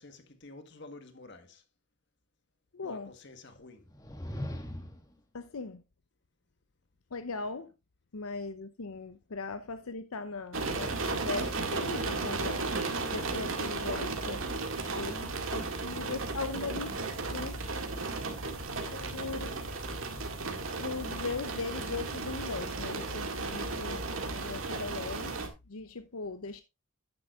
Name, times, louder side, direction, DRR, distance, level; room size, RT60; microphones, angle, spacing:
voice 1, 0.0-1.6 2.8-3.9, left 2 dB, 55° left, 1.6 m, -50 dB
voice 2, 2.7-3.1 5.3-5.8 7.1-7.7 8.1-12.7 13.1-14.4 14.9-17.6 18.9-19.7 20.7-26.6, left 4 dB, 85° left, 0.7 m, -39 dB
sound 1, 3.8-5.1, left 1 dB, 15° left, 1.4 m, -39 dB
sound 2, 10.5-25.5, right 3 dB, 70° right, 2.0 m, -35 dB
10.5 x 9.6 x 2.4 m
head